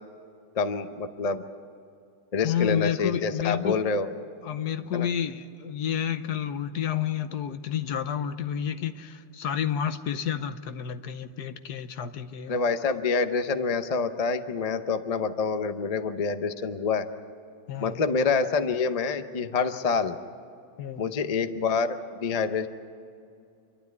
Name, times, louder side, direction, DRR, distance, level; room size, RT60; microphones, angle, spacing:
voice 1, 0.5-1.4 2.3-4.1 4.9-5.1 12.5-17.1 17.8-20.2 21.0-22.7, left 5 dB, 40° left, 0.5 m, -27 dB
voice 2, 2.4-3.8 4.4-12.5 17.7-18.0 20.8-21.0, left 9 dB, 65° left, 1.3 m, -30 dB
28.5 x 12.0 x 9.4 m
omnidirectional pair, 2.0 m